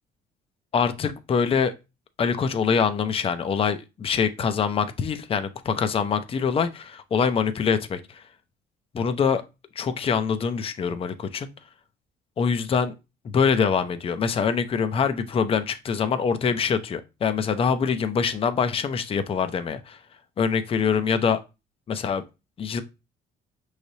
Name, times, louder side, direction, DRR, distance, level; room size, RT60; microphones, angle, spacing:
voice 1, 0.7-1.7 2.2-8.2 8.9-9.4 9.8-11.5 12.4-12.9 13.2-20.0 20.4-21.4 21.9-22.2 22.6-22.8, left 6 dB, 35° left, 0.5 m, -24 dB
5.7 x 3.2 x 2.7 m
cardioid pair, 110°, 17 cm